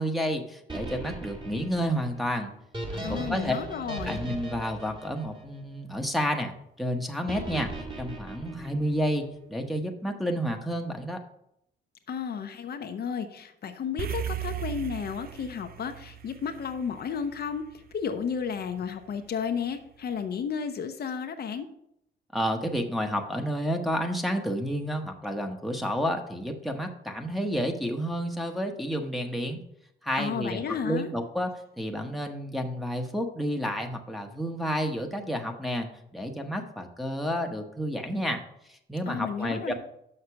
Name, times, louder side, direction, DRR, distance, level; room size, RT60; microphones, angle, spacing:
voice 1, 0.0-2.5 2.9-3.5 4.0-7.7 8.0-11.2 22.3-29.6 30.0-31.5 31.8-38.4 38.7-39.7, equal, ahead, 2 dB, 1.1 m, -30 dB
sound 1, 0.7-6.0 7.3-9.2, right 2 dB, 25° right, 1.8 m, -38 dB
voice 2, 3.0-4.2 12.1-17.7 17.9-21.7 30.2-31.1 39.1-39.7, left 7 dB, 55° left, 6 dB, 0.7 m, -33 dB
sound 2, 14.0-18.5, right 12 dB, 50° right, 0.5 m, -37 dB
6.6 x 5.7 x 5.7 m, 0.77 s
cardioid pair, 90°, 20 cm